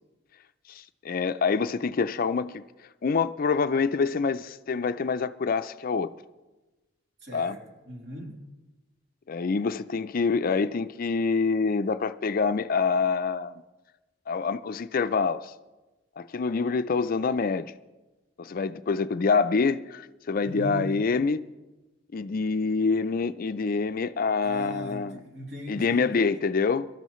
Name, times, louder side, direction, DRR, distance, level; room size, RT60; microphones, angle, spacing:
voice 1, 0.7-2.6 3.0-6.1 7.3-7.6 9.3-13.6 14.3-15.5 16.2-17.7 18.4-21.4 22.1-25.2 25.7-26.9, left 4 dB, 50° left, 0.4 m, -26 dB
voice 2, 7.2-8.4 20.4-21.0 24.4-26.1, equal, 60° right, 3.4 m, -38 dB
24.0 x 13.0 x 3.1 m
head